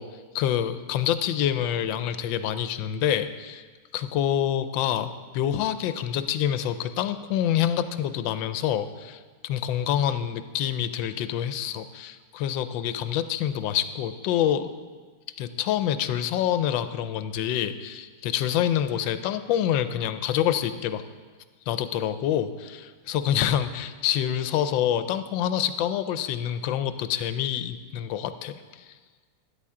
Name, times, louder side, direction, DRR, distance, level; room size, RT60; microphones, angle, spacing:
voice 1, 0.3-3.6 3.9-14.7 15.4-21.0 21.7-28.9, left 10 dB, 90° left, 11 dB, 1.3 m, -27 dB
13.0 x 10.5 x 3.7 m, 1.5 s
omnidirectional pair, 2.0 m